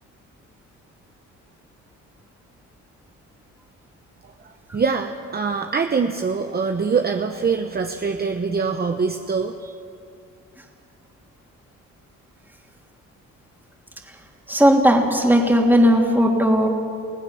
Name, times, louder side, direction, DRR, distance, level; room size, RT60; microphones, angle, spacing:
voice 1, 4.4-9.7, right 5 dB, 30° right, 5 dB, 1.0 m, -24 dB
voice 2, 14.5-16.7, equal, 5° right, 1 dB, 3.1 m, -16 dB
25.0 x 16.0 x 7.1 m, 2.5 s
cardioid pair, 90°, 30 cm